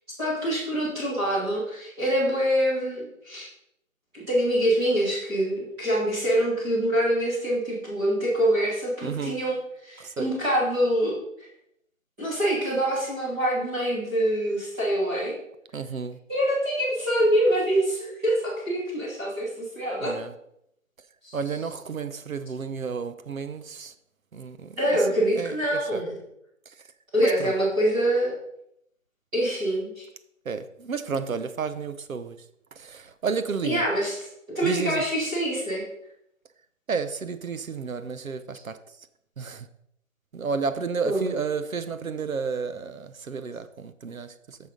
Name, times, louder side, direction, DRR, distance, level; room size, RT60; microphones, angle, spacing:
voice 1, 0.2-3.5 4.1-11.1 12.2-15.3 16.3-20.1 21.2-21.4 24.8-26.2 27.1-28.3 29.3-30.0 33.6-35.8 41.0-41.2, right 1 dB, 5° right, 2.1 m, -25 dB
voice 2, 9.0-9.4 10.0-10.3 15.7-16.2 20.0-20.3 21.3-23.9 24.3-24.8 25.4-26.0 27.2-27.5 30.5-32.4 32.8-33.9 34.6-35.1 36.9-38.8 39.4-39.7 40.3-44.6, right 5 dB, 85° right, 0.9 m, -31 dB
7.0 x 6.5 x 5.2 m
figure-of-eight pair, 170°, 40 cm